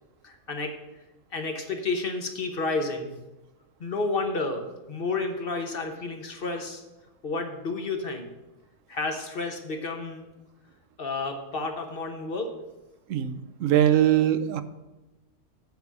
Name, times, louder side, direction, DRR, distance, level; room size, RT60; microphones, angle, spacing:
voice 1, 0.2-0.8 1.3-3.2 3.8-6.8 7.2-8.3 8.9-10.3 11.0-12.5, left 3 dB, 50° left, 4 dB, 1.1 m, -31 dB
voice 2, 13.1-14.6, right 11 dB, 80° right, 11 dB, 1.0 m, -22 dB
8.1 x 4.9 x 6.9 m, 1.0 s
omnidirectional pair, 1.3 m